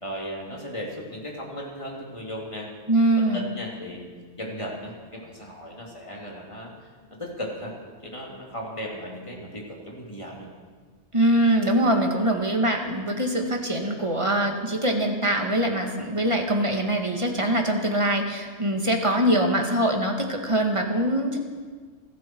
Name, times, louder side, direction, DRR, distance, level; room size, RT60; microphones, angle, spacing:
voice 1, 0.0-2.7 3.1-4.1 4.4-6.7 7.1-7.7 8.0-10.5, equal, 25° left, -2 dB, 3.2 m, -36 dB
voice 2, 2.9-3.4 11.1-21.4, right 1 dB, 25° right, 2 dB, 2.0 m, -23 dB
27.0 x 11.5 x 4.7 m, 1.5 s
omnidirectional pair, 1.2 m